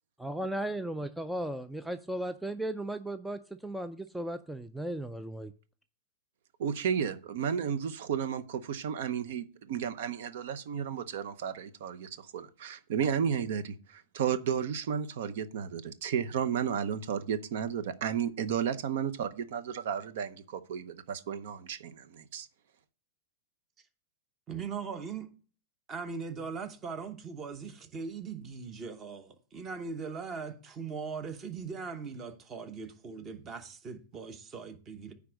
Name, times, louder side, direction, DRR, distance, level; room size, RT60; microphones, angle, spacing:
voice 1, 0.2-5.5, right 1 dB, ahead, 0.3 m, -36 dB
voice 2, 6.6-22.5, right 8 dB, 60° right, 0.7 m, -33 dB
voice 3, 24.5-25.3 25.9-35.1, right 5 dB, 20° right, 0.9 m, -40 dB
9.5 x 3.5 x 6.3 m
supercardioid pair, 160°, 0 cm